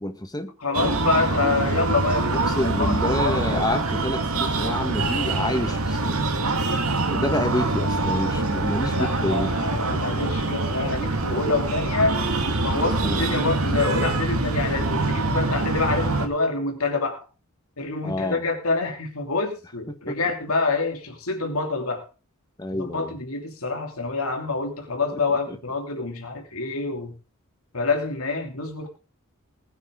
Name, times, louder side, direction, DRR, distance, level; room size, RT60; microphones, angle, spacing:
voice 1, 0.0-0.5 2.6-6.3 7.1-9.5 9.9-10.2 13.0-13.3 18.0-18.4 20.1-20.2 22.6-23.1 25.5-25.6, left 1 dB, 20° left, 7 dB, 1.6 m, -28 dB
voice 2, 0.6-3.7 8.9-12.3 12.6-17.2 17.8-22.1 22.7-27.1 27.7-28.9, left 3 dB, 85° left, 4 dB, 3.0 m, -27 dB
Breathing, 0.7-16.3, right 2 dB, 85° right, 2.0 m, -24 dB
20.0 x 9.3 x 3.9 m, 0.32 s
head